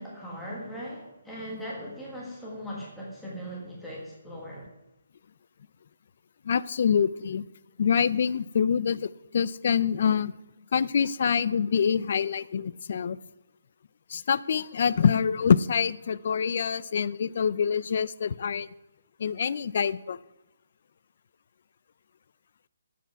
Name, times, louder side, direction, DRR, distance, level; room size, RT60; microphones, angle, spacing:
voice 1, 0.0-4.7, equal, 5° left, -6 dB, 1.5 m, -39 dB
voice 2, 6.5-7.4 7.8-10.3 10.7-13.2 14.1-18.7 19.2-20.2, left 7 dB, 40° left, 18 dB, 0.3 m, -25 dB
9.8 x 8.3 x 4.6 m, 0.94 s
hypercardioid pair, 180°, 0 cm